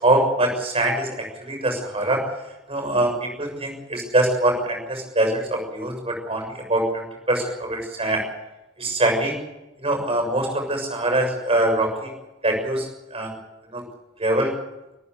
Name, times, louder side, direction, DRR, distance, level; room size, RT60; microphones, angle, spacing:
voice 1, 0.0-2.2 2.7-8.3 8.8-9.3 9.8-12.1 12.4-13.3 13.7-13.8 14.2-14.5, right 1 dB, 30° right, 3 dB, 6.5 m, -23 dB
25.0 x 14.5 x 8.3 m, 0.97 s
head